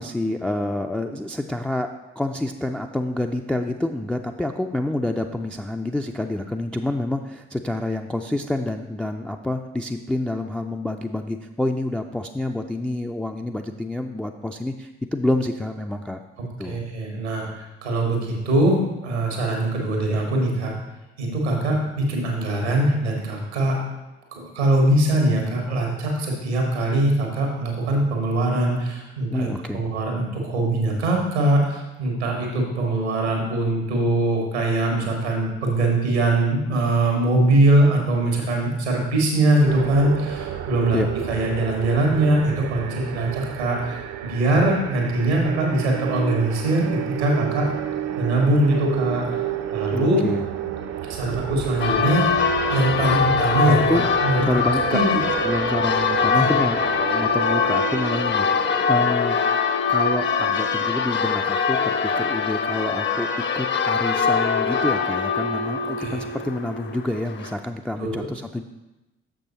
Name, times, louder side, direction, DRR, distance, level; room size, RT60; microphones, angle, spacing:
voice 1, 0.0-1.9 2.2-16.2 16.6-16.8 21.7-21.8 29.3-29.8 40.9-41.1 49.9-50.5 53.7-54.0 54.4-55.0 55.4-59.4 59.9-63.3 63.5-68.6, left 1 dB, 5° left, 3 dB, 0.3 m, -28 dB
voice 2, 16.7-20.7 21.2-23.8 24.3-29.5 29.7-44.0 44.2-47.7 48.2-49.4 49.7-50.2 51.0-52.3 52.7-54.6 54.9-55.2 56.3-56.4 66.0-66.2 68.0-68.3, right 1 dB, 85° right, 0 dB, 1.3 m, -22 dB
sound 1, 39.6-59.1, right 10 dB, 50° right, 0.6 m, -31 dB
Church bell, 51.8-67.5, left 5 dB, 35° left, 0.7 m, -23 dB
6.7 x 5.6 x 4.1 m, 1.0 s
figure-of-eight pair, 40°, 33 cm